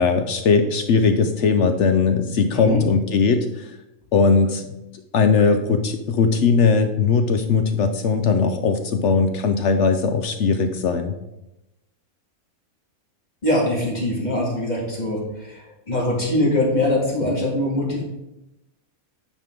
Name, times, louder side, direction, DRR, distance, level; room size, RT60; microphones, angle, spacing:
voice 1, 0.0-3.7 4.1-4.7 5.1-11.1, left 5 dB, 65° left, 7 dB, 0.8 m, -19 dB
voice 2, 13.4-18.0, left 1 dB, 30° left, -3 dB, 2.0 m, -23 dB
8.9 x 5.1 x 3.7 m, 0.93 s
omnidirectional pair, 1.6 m